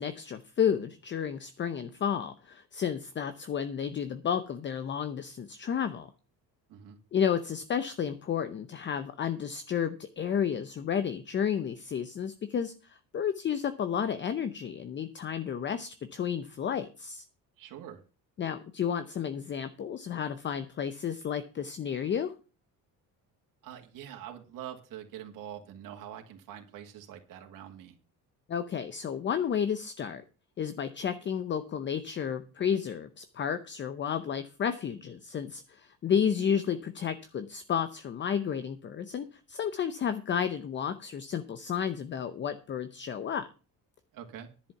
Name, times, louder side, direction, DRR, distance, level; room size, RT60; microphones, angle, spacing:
voice 1, 0.0-6.1 7.1-17.2 18.4-22.3 28.5-30.2 30.6-43.5, left 8 dB, 30° left, 11 dB, 0.7 m, -32 dB
voice 2, 17.6-18.0 23.6-28.0 44.1-44.5, right 10 dB, 60° right, 2 dB, 2.1 m, -44 dB
11.0 x 7.2 x 5.8 m, 0.34 s
cardioid pair, 165°, 37 cm